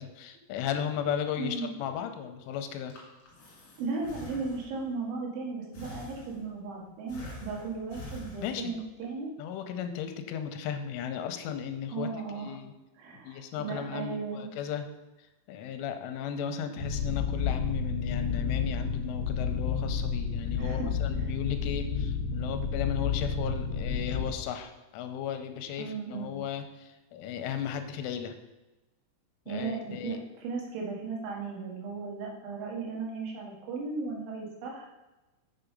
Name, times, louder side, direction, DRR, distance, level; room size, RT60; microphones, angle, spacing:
voice 1, 0.0-3.0 8.4-8.7 9.4-12.1 12.4-12.7 13.2-14.9 15.5-28.3 29.5-30.2, left 8 dB, 90° left, 7 dB, 3.2 m, -35 dB
voice 2, 1.4-1.7 3.8-9.3 11.9-12.5 13.0-14.5 20.5-20.9 25.8-26.4 29.5-34.9, right 4 dB, 75° right, -1 dB, 3.9 m, -36 dB
Breathing, 2.9-5.0 5.7-6.7 7.1-8.9, left 1 dB, 45° left, 2.5 m, -46 dB
sound 1, 16.8-24.3, left 6 dB, 65° left, 2.4 m, -30 dB
7.2 x 7.0 x 5.2 m, 1.1 s
omnidirectional pair, 5.6 m